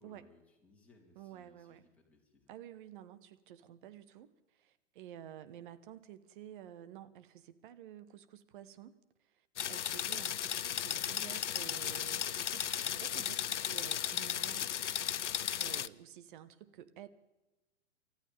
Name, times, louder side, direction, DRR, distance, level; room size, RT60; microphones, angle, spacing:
voice 1, 0.0-2.5, left 3 dB, 5° left, -3 dB, 4.0 m, -65 dB
voice 2, 1.1-1.9 2.5-14.8 15.6-17.1, right 11 dB, 45° right, 12 dB, 1.2 m, -51 dB
sound 1, 9.6-15.9, left 10 dB, 75° left, 0.6 m, -35 dB
28.5 x 14.5 x 3.5 m, 1.0 s
figure-of-eight pair, 105°, 36 cm